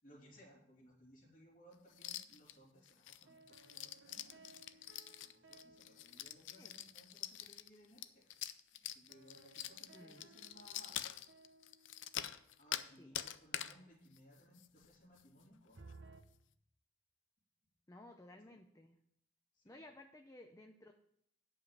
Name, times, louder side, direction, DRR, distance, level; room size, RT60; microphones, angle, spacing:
voice 1, 0.0-8.4 8.8-11.1 12.6-15.8 18.5-18.6 19.5-19.8, equal, 45° left, -3 dB, 2.9 m, -63 dB
sound 1, 1.9-2.5 2.9-12.9 13.1-13.8 14.1-14.2 14.5-14.9 15.2-15.3 15.7-15.9, left 11 dB, 80° left, 0.5 m, -45 dB
sound 2, 3.3-7.1 9.1-12.6 15.7-16.2, right 3 dB, 75° right, 0.8 m, -62 dB
voice 2, 9.9-10.3 13.0-13.2 17.9-19.0 19.7-20.9, left 1 dB, 15° left, 5 dB, 0.5 m, -57 dB
9.2 x 5.4 x 7.5 m, 0.74 s
head